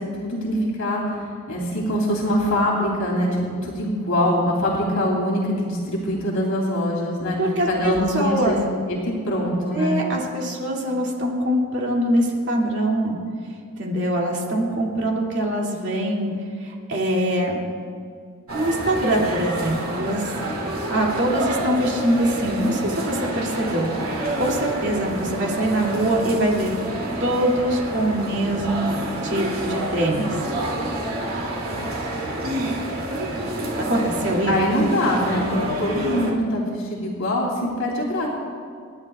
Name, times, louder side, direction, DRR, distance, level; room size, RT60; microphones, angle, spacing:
voice 1, 0.1-7.4 7.7-8.5 8.9-10.0 34.5-38.3, equal, 75° left, -3 dB, 3.0 m, -23 dB
voice 2, 7.4-8.6 9.7-13.2 13.8-16.3 16.6-17.6 18.5-20.3 20.9-23.9 24.4-26.7 27.2-29.0 29.2-30.4 33.7-34.5, right 1 dB, 55° right, -2 dB, 2.5 m, -23 dB
sound 1, 18.5-36.3, right 1 dB, 80° right, 2.6 m, -28 dB
28.0 x 11.0 x 2.4 m, 2.3 s
head